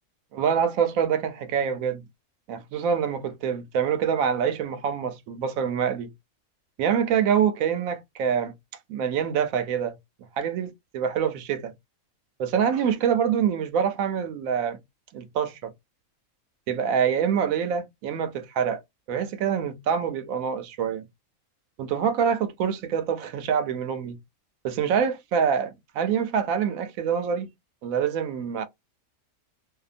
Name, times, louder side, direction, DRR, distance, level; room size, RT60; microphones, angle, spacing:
voice 1, 0.3-2.0 2.5-6.1 6.8-8.5 8.9-10.0 10.4-11.7 12.4-14.8 15.1-15.7 16.7-18.8 19.1-21.1 21.8-24.2 24.6-27.5 27.8-28.7, right 7 dB, 75° right, 1.0 m, -25 dB
2.7 x 2.2 x 2.4 m
omnidirectional pair, 1.5 m